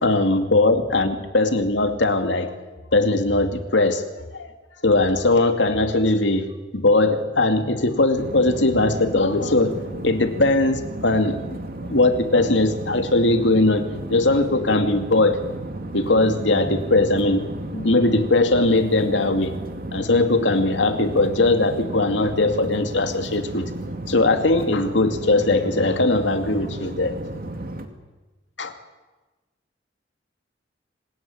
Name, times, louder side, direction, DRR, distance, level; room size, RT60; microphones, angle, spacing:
voice 1, 0.0-2.5 2.9-4.1 4.3-4.5 4.8-6.5 6.7-9.8 10.0-11.6 11.9-13.8 14.1-15.4 15.9-17.5 17.7-19.5 19.9-23.7 24.1-27.1 28.6-28.7, left 2 dB, 90° left, 7 dB, 2.5 m, -20 dB
sound 1, 8.2-27.9, right 1 dB, 55° right, 2.3 m, -34 dB
26.0 x 19.5 x 9.5 m, 1.2 s
head